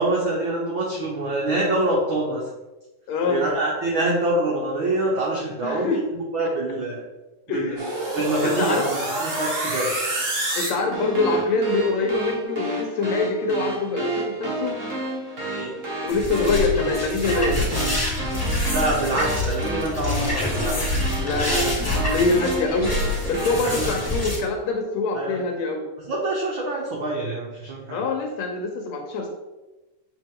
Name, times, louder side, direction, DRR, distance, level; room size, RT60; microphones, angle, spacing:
voice 1, 0.0-2.4 3.3-7.0 7.5-7.8 8.1-10.0 15.4-15.7 18.7-20.4 23.6-23.9 25.1-25.4 26.1-28.0, right 2 dB, 80° right, -3 dB, 1.1 m, -25 dB
voice 2, 3.1-3.4 5.6-6.0 7.5-7.9 8.1-8.9 10.6-14.7 16.0-17.6 21.2-23.0 23.3-25.9 27.9-29.3, left 3 dB, 75° left, 2 dB, 1.8 m, -24 dB
sound 1, 7.8-23.7, right 1 dB, 55° right, 0.8 m, -30 dB
sound 2, 16.1-24.4, left 1 dB, 5° left, 1.1 m, -26 dB
7.7 x 3.6 x 3.6 m, 1.1 s
omnidirectional pair, 3.5 m